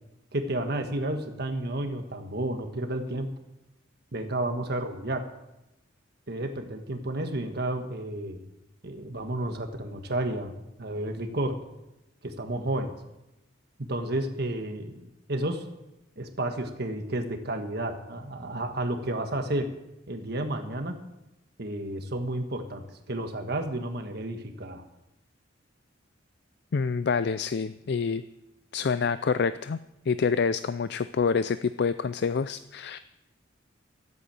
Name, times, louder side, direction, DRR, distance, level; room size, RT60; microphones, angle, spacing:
voice 1, 0.3-3.3 4.1-5.2 6.3-8.4 8.8-10.5 10.8-11.6 12.2-12.9 13.9-15.0 15.3-15.6 16.2-19.7 20.1-20.9 21.6-24.8, right 1 dB, 55° right, 5 dB, 1.4 m, -31 dB
voice 2, 26.7-28.2 28.7-29.8 30.1-33.0, left 5 dB, 60° left, 13 dB, 0.4 m, -27 dB
14.0 x 8.4 x 8.7 m, 0.92 s
head